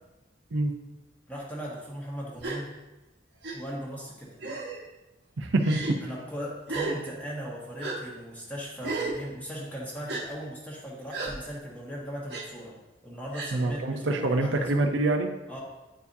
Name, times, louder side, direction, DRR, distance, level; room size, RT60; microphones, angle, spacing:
voice 1, 1.3-2.7 3.5-4.3 6.0-12.7 13.0-14.7 15.5-15.6, equal, 10° left, -5 dB, 1.4 m, -38 dB
Gasp, 2.4-2.6 3.4-3.6 4.4-4.8 5.6-6.0 6.7-7.0 7.8-8.0 8.8-9.2 10.1-10.2 11.1-11.3 12.3-12.4 13.3-13.6, right 3 dB, 60° right, 1.0 m, -32 dB
voice 2, 5.4-5.8 13.5-15.3, right 2 dB, 85° right, 5 dB, 0.6 m, -25 dB
9.9 x 4.7 x 2.7 m, 1.0 s
head